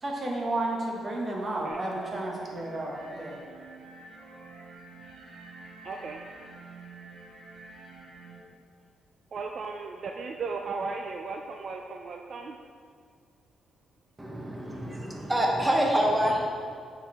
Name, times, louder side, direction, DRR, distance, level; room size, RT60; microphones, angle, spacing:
voice 1, 0.0-3.4, right 2 dB, 35° right, -1 dB, 1.3 m, -32 dB
voice 2, 1.5-1.8 5.8-6.2 9.3-12.6 14.7-14.8, right 4 dB, 55° right, 3 dB, 0.4 m, -36 dB
sound 1, 1.7-8.4, right 3 dB, 90° right, 1.7 m, -48 dB
voice 3, 14.2-16.5, equal, 15° right, 0 dB, 0.8 m, -26 dB
8.9 x 4.6 x 3.5 m, 2.2 s
cardioid pair, 100°, 0 cm